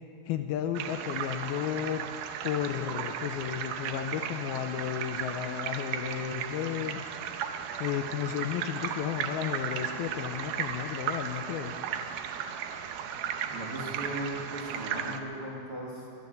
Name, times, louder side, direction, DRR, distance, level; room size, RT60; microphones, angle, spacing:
voice 1, 0.3-2.1 2.4-7.0 7.8-11.8, left 10 dB, 80° left, 7 dB, 2.4 m, -33 dB
sound 1, 0.8-15.2, right 8 dB, 80° right, 2.0 m, -36 dB
voice 2, 13.5-16.1, right 1 dB, 40° right, -4 dB, 2.4 m, -37 dB
19.5 x 11.5 x 6.5 m, 2.5 s
omnidirectional pair, 4.6 m